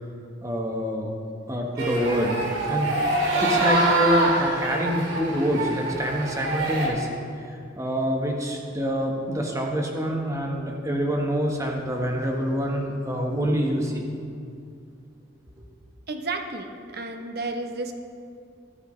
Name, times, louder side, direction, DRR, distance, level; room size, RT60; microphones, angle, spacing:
voice 1, 0.4-1.1 1.5-2.4 2.7-3.1 3.4-7.2 7.5-14.1, equal, 15° right, 0 dB, 1.4 m, -26 dB
sound 1, 1.8-6.9, right 2 dB, 85° right, 2.6 m, -25 dB
voice 2, 16.1-17.9, right 3 dB, 55° right, 5 dB, 1.1 m, -32 dB
23.0 x 9.5 x 3.3 m, 2.4 s
head